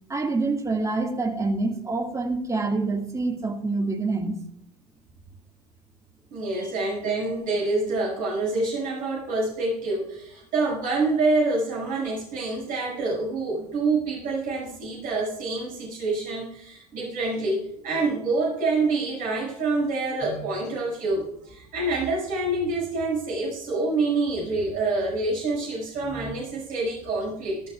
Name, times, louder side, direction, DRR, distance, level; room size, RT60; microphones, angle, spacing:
voice 1, 0.1-4.4 6.5-6.7 20.2-20.4 26.0-26.3, right 3 dB, 15° right, 3 dB, 1.8 m, -27 dB
voice 2, 6.3-27.6, right 3 dB, 45° right, -4 dB, 5.9 m, -27 dB
18.0 x 12.5 x 2.4 m, 0.77 s
figure-of-eight pair, 70°, 20 cm